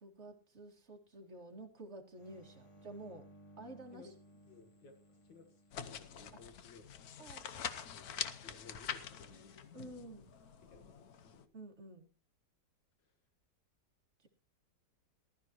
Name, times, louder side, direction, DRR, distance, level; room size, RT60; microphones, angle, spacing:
voice 1, 0.0-3.3 3.6-4.1 6.3-6.4 7.2-7.4 9.7-10.3 11.5-12.1 14.2-14.3, right 2 dB, 35° right, 1 dB, 2.4 m, -51 dB
sound 1, 2.2-6.8 10.1-10.6, right 1 dB, 20° left, 1.0 m, -61 dB
voice 2, 4.4-5.0 5.2-7.1 7.9-10.0 10.6-11.5 13.0-13.1, left 4 dB, 75° left, 6 dB, 2.1 m, -59 dB
sound 2, 5.7-11.4, left 8 dB, 60° left, 1.2 m, -45 dB
19.5 x 12.5 x 3.0 m, 0.35 s
omnidirectional pair, 2.0 m